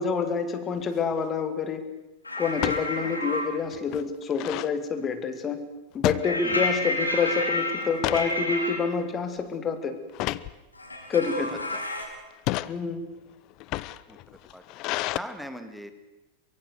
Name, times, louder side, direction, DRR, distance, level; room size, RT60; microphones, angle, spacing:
voice 1, 0.0-1.8 2.4-5.6 5.9-10.0 11.1-11.6 12.7-13.1, left 5 dB, 25° left, 9 dB, 2.5 m, -27 dB
sound 1, 0.8-1.1 2.5-2.9 3.3-3.4 3.7-4.7 6.0-6.8 7.2-7.4 7.8-8.4 8.9-9.2 10.1-10.5 11.3-11.7 12.3-12.7 13.5-15.2, left 18 dB, 40° left, 0.7 m, -31 dB
sound 2, 2.2-3.5 6.2-8.8 10.8-12.0, left 1 dB, 85° left, 4.7 m, -30 dB
voice 2, 14.5-15.9, equal, ahead, 9 dB, 2.2 m, -40 dB
23.5 x 23.0 x 6.6 m, 1.0 s
figure-of-eight pair, 90°, 0 cm